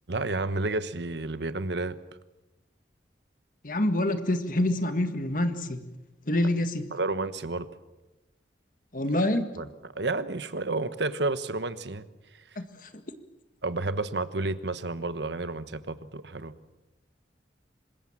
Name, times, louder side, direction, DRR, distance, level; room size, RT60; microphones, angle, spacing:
voice 1, 0.1-2.0 6.9-7.7 9.6-9.7 9.9-12.1 13.6-16.5, right 2 dB, 70° right, 13 dB, 1.2 m, -30 dB
voice 2, 3.6-5.8 6.3-6.9 8.9-9.5 12.6-12.9, left 1 dB, 50° left, 8 dB, 1.9 m, -26 dB
25.5 x 21.0 x 7.4 m, 1.0 s
head